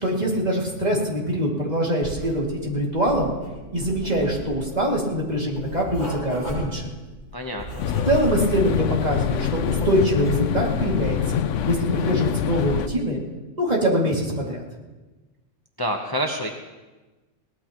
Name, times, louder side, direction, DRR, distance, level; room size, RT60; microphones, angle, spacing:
voice 1, 0.0-3.3 3.7-6.9 8.0-11.2 11.7-13.2 13.6-14.6, equal, 35° right, -3 dB, 2.7 m, -23 dB
Writing, 2.0-2.7 2.9-8.8 9.1-10.5, right 1 dB, 35° left, 7.2 m, -36 dB
voice 2, 7.3-7.9 15.8-16.5, equal, 20° left, 1 dB, 1.0 m, -27 dB
sound 1, 7.8-12.9, left 9 dB, 75° left, 1.0 m, -25 dB
22.0 x 18.0 x 3.1 m, 1.2 s
omnidirectional pair, 1.3 m